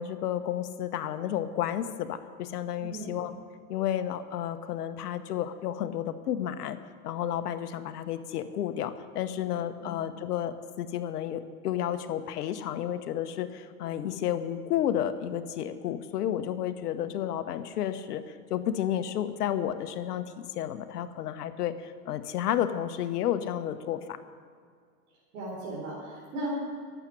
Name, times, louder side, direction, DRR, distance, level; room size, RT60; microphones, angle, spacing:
voice 1, 0.0-3.3 3.7-6.8 7.0-24.2, left 10 dB, 80° left, 10 dB, 1.1 m, -31 dB
voice 2, 2.8-3.1 9.8-9.9 25.3-26.5, right 2 dB, 70° right, -5 dB, 4.3 m, -37 dB
11.5 x 8.2 x 9.9 m, 2.1 s
hypercardioid pair, 100°, 46 cm